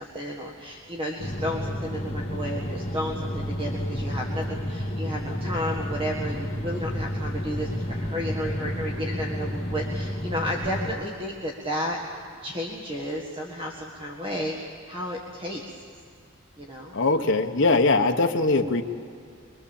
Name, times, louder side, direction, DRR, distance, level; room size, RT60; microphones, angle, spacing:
voice 1, 0.0-15.6 16.6-16.9, equal, 25° right, -1 dB, 1.7 m, -32 dB
sound 1, 1.2-10.9, equal, 30° left, 2.0 m, -31 dB
voice 2, 16.9-18.8, left 3 dB, 60° left, 4 dB, 1.2 m, -21 dB
24.0 x 23.0 x 7.2 m, 2.2 s
head